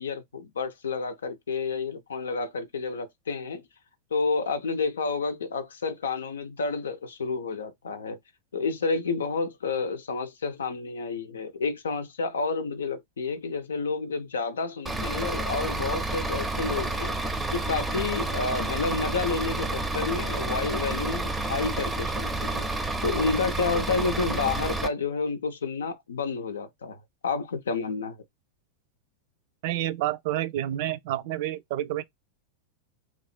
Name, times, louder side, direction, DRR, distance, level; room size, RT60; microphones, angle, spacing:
voice 1, 0.0-3.6 4.1-8.2 8.5-22.7 23.0-28.2, left 4 dB, 70° left, 0.6 m, -30 dB
Bus / Idling, 14.9-24.9, right 2 dB, 10° right, 0.6 m, -30 dB
voice 2, 29.6-32.0, right 13 dB, 50° right, 0.4 m, -29 dB
3.0 x 2.5 x 4.2 m
figure-of-eight pair, 90°, 0 cm